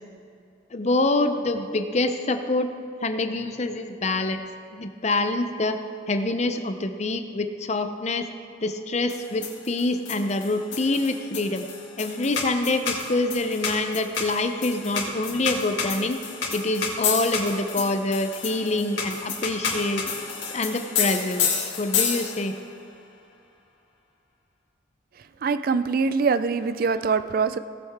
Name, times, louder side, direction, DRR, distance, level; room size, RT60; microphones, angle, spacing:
voice 1, 0.7-2.7 3.0-4.4 4.7-5.8 6.1-8.3 8.6-11.6 12.0-16.2 16.5-20.0 20.5-22.5, left 2 dB, 35° left, 8 dB, 0.6 m, -26 dB
sound 1, 9.1-22.6, left 5 dB, 75° left, 2.1 m, -30 dB
voice 2, 25.4-27.6, right 5 dB, 50° right, 12 dB, 0.4 m, -23 dB
17.5 x 7.8 x 3.6 m, 2.5 s
head